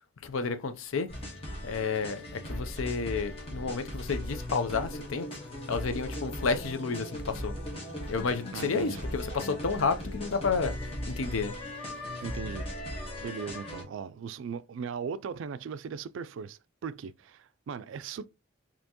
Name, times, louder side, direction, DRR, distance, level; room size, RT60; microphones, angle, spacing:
voice 1, 0.2-1.1 1.6-5.3 5.7-7.5 8.1-11.5, left 4 dB, 85° left, 0.6 m, -31 dB
sound 1, 1.1-13.8, left 1 dB, 30° left, 1.3 m, -38 dB
voice 2, 8.5-9.0 12.2-12.7 13.2-18.3, right 6 dB, 70° right, 0.3 m, -38 dB
4.3 x 2.9 x 2.9 m
head